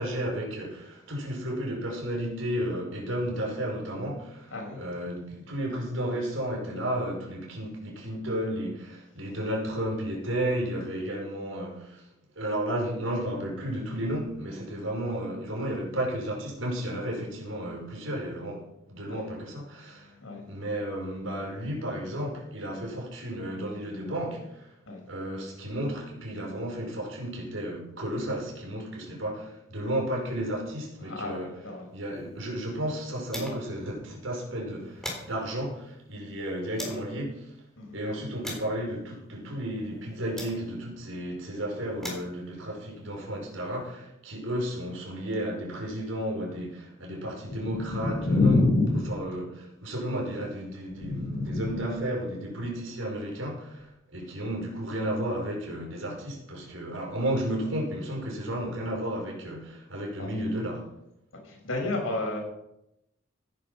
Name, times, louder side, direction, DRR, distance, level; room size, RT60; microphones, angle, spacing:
voice 1, 0.0-12.0 12.4-20.1 20.5-24.7 25.1-31.6 31.9-37.5 37.9-48.6 49.1-53.9 54.1-60.9, right 1 dB, 80° right, 5.2 m, -33 dB
voice 2, 4.5-4.8 19.1-19.2 20.2-20.5 24.9-25.1 31.0-32.2 37.8-38.0 47.5-49.1 51.0-51.8 60.2-60.3 61.4-62.4, left 2 dB, 90° left, 6.5 m, -28 dB
sound 1, 32.0-33.8 34.1-34.2 34.6-37.1 37.7-41.0 41.7-43.9, left 1 dB, ahead, 3.9 m, -43 dB
16.5 x 10.5 x 5.6 m
head